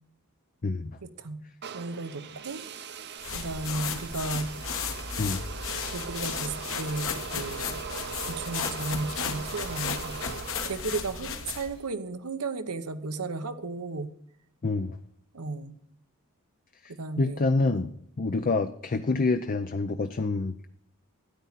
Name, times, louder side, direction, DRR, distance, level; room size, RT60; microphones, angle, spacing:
voice 1, 0.6-1.0 5.2-5.4 14.6-15.0 16.8-17.9 18.2-20.7, left 3 dB, 40° left, 9 dB, 0.5 m, -27 dB
sound 1, 1.6-11.8, right 6 dB, 50° right, 0.8 m, -40 dB
voice 2, 1.7-2.6 3.3-4.5 5.9-7.8 8.3-10.1 10.7-14.1 15.3-15.8 17.0-17.9, right 3 dB, 85° right, 9 dB, 1.0 m, -34 dB
sound 2, 3.2-11.8, left 6 dB, 65° left, 1.4 m, -34 dB
13.0 x 9.8 x 4.1 m, 0.69 s
head